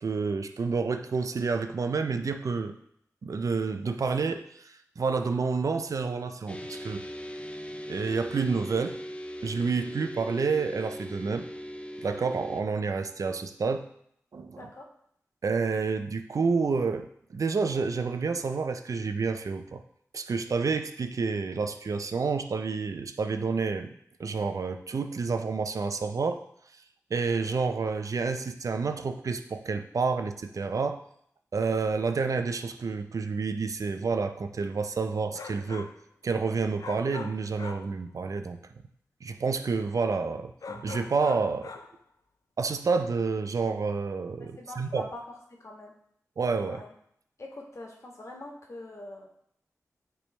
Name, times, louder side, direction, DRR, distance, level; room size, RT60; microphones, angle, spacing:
voice 1, 0.0-2.8 3.2-4.5 5.0-7.0 7.9-9.0 9.4-11.5 12.0-13.9 14.3-14.7 15.4-19.8 20.1-23.9 24.2-26.4 27.1-31.0 31.5-35.9 36.2-38.6 39.2-41.7 42.6-45.1 46.4-46.8, right 4 dB, 65° right, 8 dB, 0.5 m, -29 dB
sound 1, 6.5-12.6, equal, 20° left, 0.5 m, -39 dB
sound 2, 35.3-36.0 36.8-38.0 40.6-42.0, left 4 dB, 70° left, 0.5 m, -42 dB
voice 2, 44.5-45.2 45.6-45.9 46.7-46.9 47.4-49.3, left 2 dB, 50° left, -1 dB, 1.5 m, -43 dB
8.7 x 3.4 x 3.2 m, 0.70 s
cardioid pair, 45°, 6 cm